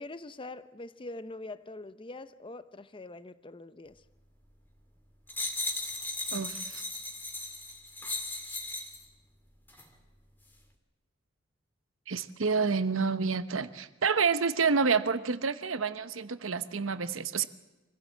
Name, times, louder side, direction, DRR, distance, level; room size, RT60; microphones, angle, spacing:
voice 1, 0.0-4.0, left 2 dB, 25° left, 0.8 m, -43 dB
sound 1, 5.3-9.0 9.7-9.9, left 2 dB, 10° left, 2.3 m, -36 dB
voice 2, 6.3-6.8 12.1-17.5, right 5 dB, 85° right, 1.0 m, -28 dB
24.5 x 15.5 x 7.5 m
head